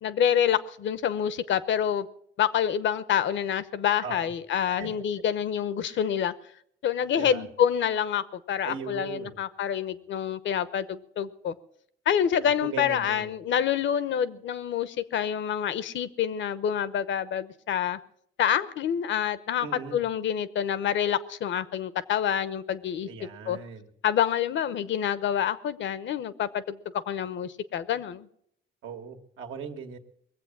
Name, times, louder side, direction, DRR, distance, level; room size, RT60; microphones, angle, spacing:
voice 1, 0.0-2.1 2.4-6.3 6.8-11.5 12.1-18.0 18.4-23.1 23.5-23.6 24.0-26.8 27.1-28.3, left 9 dB, 70° left, 0.9 m, -27 dB
voice 2, 8.6-9.3 12.6-13.3 19.6-20.0 23.1-23.9 28.8-30.0, right 6 dB, 85° right, 1.8 m, -38 dB
21.0 x 7.9 x 7.3 m
cardioid pair, 90°, 20 cm